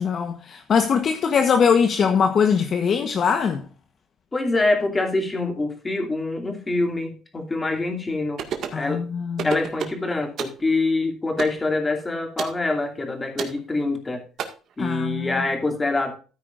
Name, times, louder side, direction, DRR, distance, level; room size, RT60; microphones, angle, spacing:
voice 1, 0.0-3.6 8.7-9.5 14.8-15.3, left 6 dB, 45° left, 1.1 m, -21 dB
voice 2, 4.3-8.4 8.7-9.0 9.4-14.2 14.8-16.1, left 2 dB, 15° left, 2.7 m, -25 dB
sound 1, 8.4-8.8 9.4-10.0 10.4-10.6 11.4-11.6 12.4-12.6 13.4-13.6 14.4-14.5, right 8 dB, 55° right, 1.9 m, -29 dB
13.5 x 9.5 x 2.5 m
cardioid pair, 135°, 0 cm